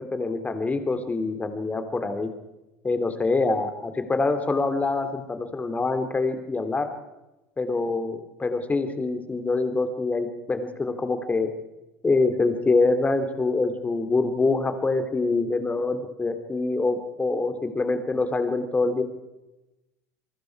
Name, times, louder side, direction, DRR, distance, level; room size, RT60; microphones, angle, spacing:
voice 1, 0.0-2.3 2.8-6.9 7.6-11.5 12.0-19.0, left 3 dB, 15° left, 8 dB, 3.1 m, -25 dB
29.0 x 23.0 x 4.8 m, 0.99 s
hypercardioid pair, 80°, 8 cm